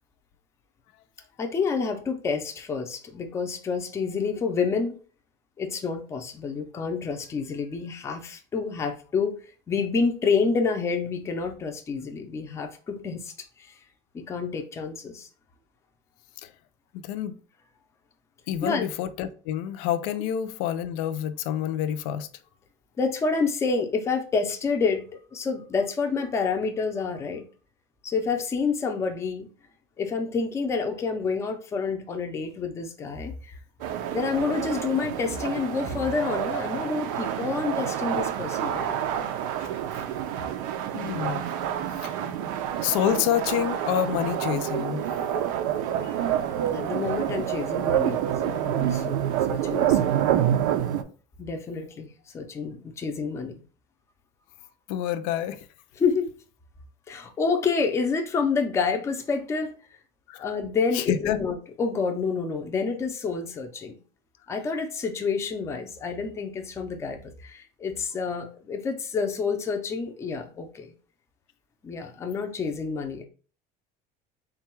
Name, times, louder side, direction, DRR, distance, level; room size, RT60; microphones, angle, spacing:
voice 1, 1.4-5.0 5.6-9.4 9.7-13.7 14.1-15.3 18.6-18.9 23.0-25.0 25.3-27.5 28.0-29.5 30.0-33.6 34.1-39.0 46.7-49.2 49.5-50.2 51.4-53.6 56.0-56.3 57.1-59.7 60.4-63.9 64.5-70.9 71.8-73.2, left 5 dB, 15° left, 0.5 m, -28 dB
voice 2, 17.0-17.4 18.5-22.3 40.9-41.4 42.8-45.0 54.9-55.6 60.3-60.5 60.9-61.4, left 11 dB, 80° left, 0.4 m, -27 dB
sound 1, 33.8-51.0, right 10 dB, 90° right, 0.5 m, -28 dB
3.8 x 2.3 x 4.4 m
cardioid pair, 170°, 17 cm